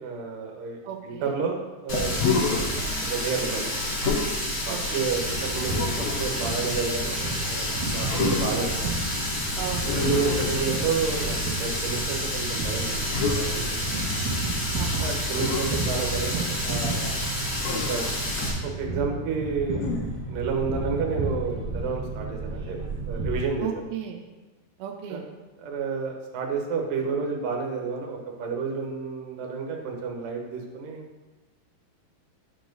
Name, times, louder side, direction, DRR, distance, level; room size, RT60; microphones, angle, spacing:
voice 1, 0.0-2.7 3.1-3.9 4.7-8.9 9.9-13.0 13.3-14.0 15.0-17.2 17.9-18.1 18.6-19.9 20.3-22.8 23.1-23.8 25.1-25.2 25.6-31.0, right 5 dB, 70° right, 1 dB, 2.7 m, -30 dB
voice 2, 0.8-1.3 4.7-5.1 9.5-10.0 10.3-10.4 14.7-15.1 23.6-24.2 24.8-25.2, right 9 dB, 90° right, 2 dB, 2.6 m, -35 dB
Water tap faucet, 1.9-18.5, left 1 dB, 40° left, 1.7 m, -30 dB
Human voice, 2.1-2.8 4.0-4.3 5.7-6.3 8.1-8.7 9.8-11.1 13.1-13.4 15.3-15.7 17.6-18.1 19.7-20.3, left 5 dB, 75° left, 1.6 m, -28 dB
sound 1, 5.0-23.4, right 3 dB, 40° right, 1.2 m, -33 dB
11.0 x 4.7 x 3.9 m, 1.2 s
omnidirectional pair, 4.3 m